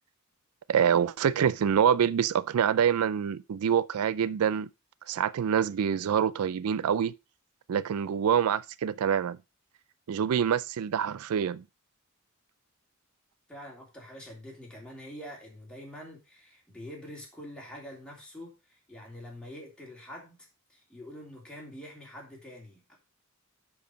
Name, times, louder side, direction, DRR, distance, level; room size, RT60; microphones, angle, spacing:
voice 1, 0.7-4.7 5.1-7.1 7.7-9.4 10.1-11.6, right 8 dB, 90° right, 0.4 m, -26 dB
voice 2, 13.5-23.0, equal, 5° left, 3.2 m, -45 dB
10.0 x 4.8 x 5.1 m
head